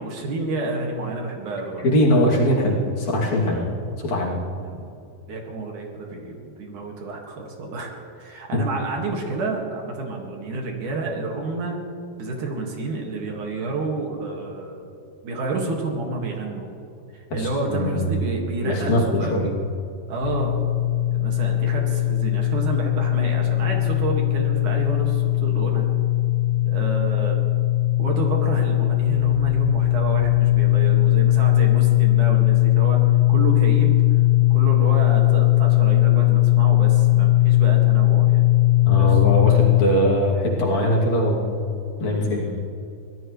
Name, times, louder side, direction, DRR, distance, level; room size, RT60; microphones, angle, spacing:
voice 1, 0.0-1.8 3.5-3.8 4.6-11.8 12.2-14.9 15.2-16.7 17.1-18.9 19.2-19.5 20.1-20.6 21.1-25.9 26.6-27.4 28.0-33.9 34.4-38.4 38.9-39.2 42.1-42.6, right 3 dB, 65° right, 0 dB, 3.3 m, -29 dB
voice 2, 1.8-3.6 4.0-4.4 17.3-18.1 18.6-19.5 38.9-41.6 42.0-42.4, left 1 dB, 55° left, -3 dB, 3.8 m, -21 dB
sound 1, 20.2-39.8, left 16 dB, 75° left, 2.2 m, -19 dB
24.5 x 17.5 x 3.2 m, 2.6 s
omnidirectional pair, 4.0 m